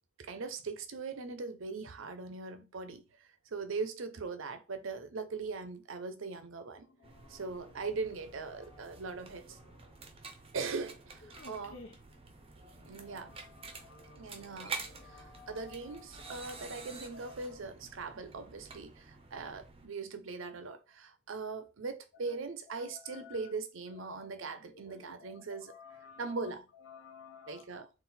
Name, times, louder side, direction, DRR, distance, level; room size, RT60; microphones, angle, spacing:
voice 1, 0.2-6.8 7.3-9.6 10.5-11.7 12.9-13.4 14.2-25.8 26.2-26.7 27.5-27.9, right 4 dB, 70° right, 0.6 m, -40 dB
voice 2, 6.8-7.8 8.5-10.2 11.2-12.0 12.7-17.6 22.2-22.4 22.7-23.5 23.9-24.3 24.6-27.8, left 5 dB, 65° left, 1.1 m, -55 dB
sound 1, 7.0-19.9, right 4 dB, 25° right, 0.6 m, -49 dB
3.9 x 2.5 x 4.1 m
head